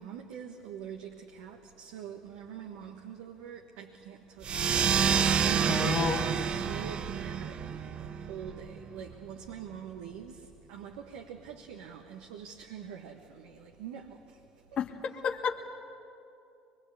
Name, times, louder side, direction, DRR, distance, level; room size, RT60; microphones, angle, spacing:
voice 1, 0.0-5.1 5.4-14.8, right 8 dB, 75° right, 1.5 m, -44 dB
sound 1, 4.4-9.5, right 7 dB, 45° right, 1.0 m, -29 dB
voice 2, 5.7-6.2 14.8-15.7, left 6 dB, 45° left, 1.5 m, -31 dB
24.0 x 22.0 x 8.4 m
hypercardioid pair, 65°, 3 cm